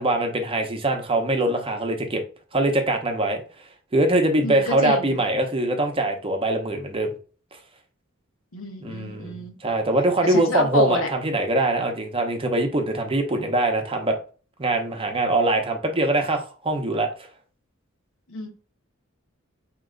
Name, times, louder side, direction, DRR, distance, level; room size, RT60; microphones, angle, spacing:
voice 1, 0.0-2.2 2.5-3.4 3.9-7.1 8.8-14.2 14.6-17.1, right 2 dB, 25° right, 0.8 m, -23 dB
voice 2, 4.4-5.2 8.5-9.6 10.2-11.1 18.3-18.5, left 2 dB, 75° left, 1.2 m, -28 dB
4.4 x 3.0 x 3.8 m
head